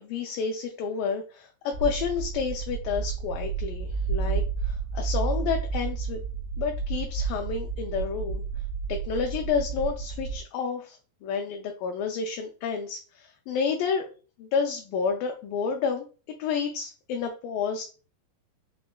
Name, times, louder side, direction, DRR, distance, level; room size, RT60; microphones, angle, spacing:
voice 1, 0.0-6.2 6.6-8.4 8.9-14.1 14.4-16.1 16.4-17.8, left 6 dB, 80° left, 3 dB, 2.0 m, -30 dB
sound 1, 1.7-10.4, right 5 dB, 85° right, 2.3 m, -31 dB
5.8 x 2.1 x 2.2 m, 0.36 s
omnidirectional pair, 4.2 m